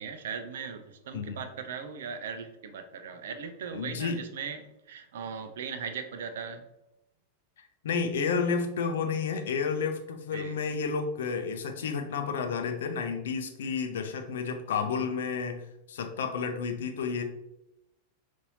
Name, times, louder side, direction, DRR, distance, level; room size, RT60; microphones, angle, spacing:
voice 1, 0.0-4.6 4.9-6.6 10.3-10.5, right 6 dB, 60° right, 8 dB, 0.4 m, -38 dB
voice 2, 3.7-4.3 7.8-17.2, left 5 dB, 60° left, 5 dB, 0.5 m, -31 dB
5.3 x 2.6 x 2.7 m, 0.87 s
figure-of-eight pair, 90°, 0 cm